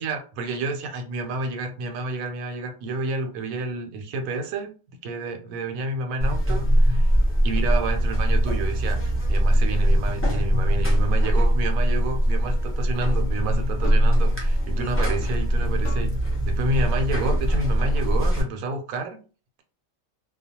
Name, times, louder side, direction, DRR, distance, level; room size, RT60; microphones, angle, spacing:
voice 1, 0.0-4.7 5.0-7.1 7.4-9.0 9.3-16.1 16.4-19.2, right 2 dB, 80° right, 5 dB, 1.0 m, -30 dB
Buzz, 6.2-18.4, equal, 20° left, 0.4 m, -21 dB
sound 1, 13.8-14.2 15.8-16.2 17.2-17.4, left 3 dB, 75° left, 1.0 m, -40 dB
2.4 x 2.2 x 2.7 m, 0.37 s
omnidirectional pair, 1.4 m